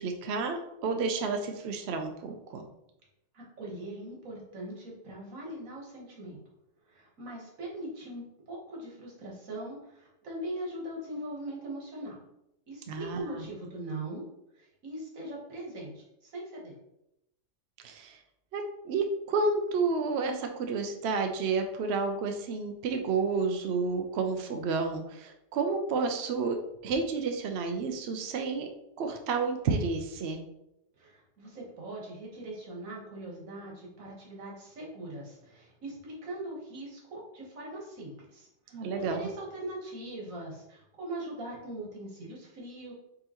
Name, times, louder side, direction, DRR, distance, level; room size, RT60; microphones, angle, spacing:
voice 1, 0.0-2.7 12.9-13.2 17.8-18.2 18.5-26.6 26.8-28.7 29.0-30.4 38.7-39.3, right 4 dB, 65° right, 5 dB, 0.7 m, -30 dB
voice 2, 3.3-6.4 6.9-12.2 12.7-14.2 14.6-16.7 31.0-42.9, right 1 dB, 85° right, -2 dB, 1.7 m, -41 dB
4.8 x 3.7 x 2.9 m, 0.85 s
omnidirectional pair, 1.4 m